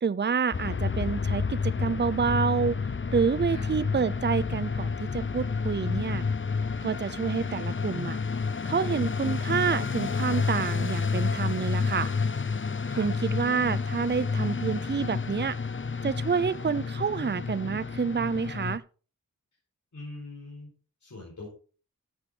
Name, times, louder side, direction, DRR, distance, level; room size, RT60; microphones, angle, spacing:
voice 1, 0.0-2.8 3.1-6.3 6.8-8.2 8.6-12.1 13.0-15.6 16.0-18.8, right 6 dB, 35° right, 0.6 m, -28 dB
sound 1, 0.5-18.8, left 5 dB, 35° left, 0.7 m, -30 dB
voice 2, 19.9-20.7 21.0-21.5, left 2 dB, 60° left, 4.8 m, -42 dB
13.0 x 7.9 x 3.9 m
wide cardioid pair, 50°, 33 cm